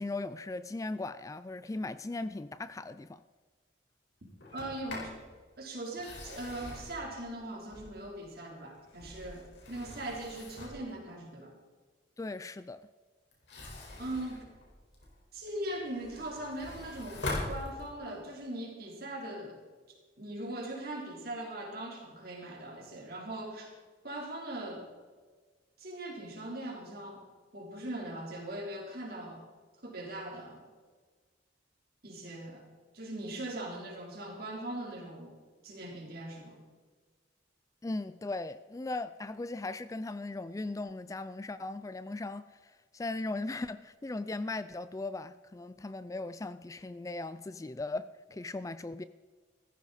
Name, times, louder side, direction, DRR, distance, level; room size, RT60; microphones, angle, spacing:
voice 1, 0.0-3.2 12.2-12.8 37.8-49.0, left 2 dB, 15° left, 0.3 m, -38 dB
Sliding door, 4.4-5.2 5.9-8.2 8.7-10.9 13.3-15.2 15.7-18.2, left 2 dB, 70° left, 4.7 m, -42 dB
voice 2, 4.5-5.2 5.6-11.5 14.0-14.5 15.3-23.7 24.0-24.9 25.8-29.5 29.8-30.6 32.0-32.6 32.9-35.4 35.6-36.6, right 1 dB, 55° right, 3.7 m, -40 dB
16.0 x 14.5 x 4.2 m
head